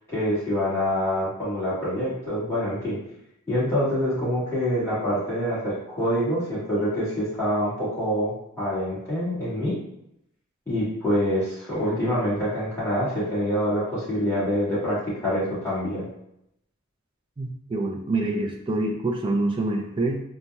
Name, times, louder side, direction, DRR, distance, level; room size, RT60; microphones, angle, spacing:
voice 1, 0.1-3.0 3.5-9.8 10.7-16.1, equal, 10° left, -11 dB, 1.4 m, -26 dB
voice 2, 17.4-20.2, right 2 dB, 20° right, 1 dB, 0.3 m, -26 dB
4.0 x 2.1 x 2.2 m, 0.80 s
head